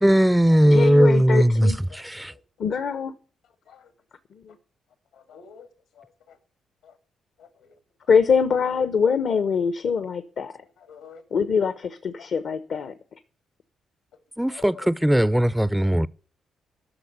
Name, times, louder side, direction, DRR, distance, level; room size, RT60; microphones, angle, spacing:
voice 1, 0.0-2.3 14.4-16.1, equal, 5° right, 0.5 m, -18 dB
voice 2, 0.6-1.8 2.6-3.1 4.3-4.5 8.1-10.5 11.3-12.9, left 6 dB, 60° left, 1.0 m, -23 dB
voice 3, 1.9-2.4 3.6-3.9 5.1-5.7 6.8-7.0 7.4-7.8 10.8-11.2 12.2-12.3 14.5-14.9 15.8-16.1, left 7 dB, 80° left, 2.6 m, -48 dB
13.0 x 6.6 x 9.5 m
hypercardioid pair, 45°, 0 cm